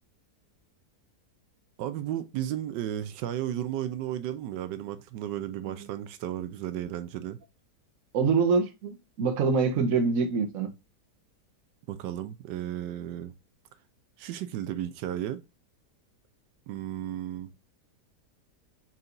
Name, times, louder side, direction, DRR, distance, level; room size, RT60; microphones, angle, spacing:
voice 1, 1.8-7.4 11.9-13.3 14.2-15.4 16.7-17.5, right 11 dB, 90° right, 1.2 m, -34 dB
voice 2, 8.1-10.7, right 5 dB, 60° right, 1.2 m, -25 dB
4.3 x 3.8 x 2.5 m
omnidirectional pair, 1.8 m